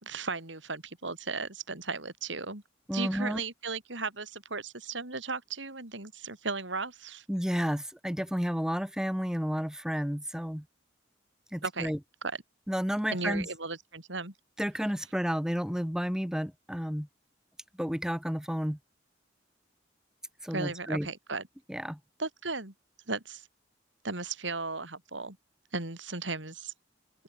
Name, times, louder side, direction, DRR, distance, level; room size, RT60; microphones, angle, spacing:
voice 1, 0.0-2.6 2.9-7.3 11.6-11.9 12.2-12.4 13.1-14.3 20.5-21.4 22.2-22.7 23.1-23.5 24.0-25.4 25.7-26.7, right 3 dB, 75° right, 5.1 m, -36 dB
voice 2, 2.9-3.4 7.3-10.6 11.5-12.0 12.7-13.5 14.6-17.1 17.8-18.8 20.4-21.1 21.7-22.0, equal, 5° right, 1.3 m, -31 dB
open air
head